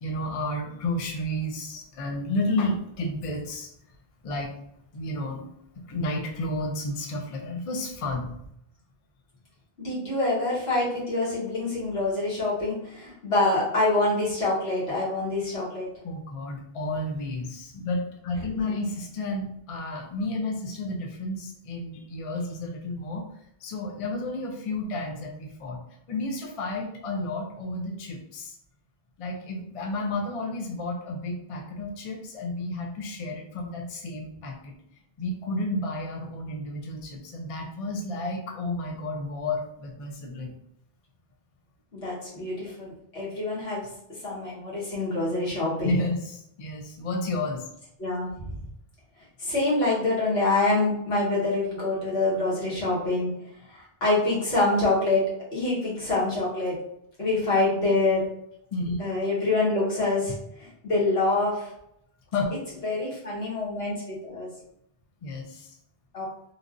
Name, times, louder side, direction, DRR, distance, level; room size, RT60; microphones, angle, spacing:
voice 1, 0.0-3.7 4.2-4.5 4.9-5.5 5.8-8.3 16.0-23.3 23.6-25.8 26.1-28.5 29.2-34.7 35.2-40.5 45.8-47.6 58.7-59.0 62.3-62.5 65.2-65.7, left 2 dB, 45° left, 1 dB, 0.5 m, -31 dB
voice 2, 9.8-15.9 18.6-18.7 41.9-43.8 44.2-46.0 48.0-48.5 49.4-53.3 53.7-55.2 55.5-56.8 57.2-58.2 59.0-61.7 62.8-64.5 66.1-66.3, left 2 dB, 80° left, -7 dB, 1.5 m, -26 dB
3.2 x 2.5 x 2.4 m, 0.74 s
omnidirectional pair, 1.0 m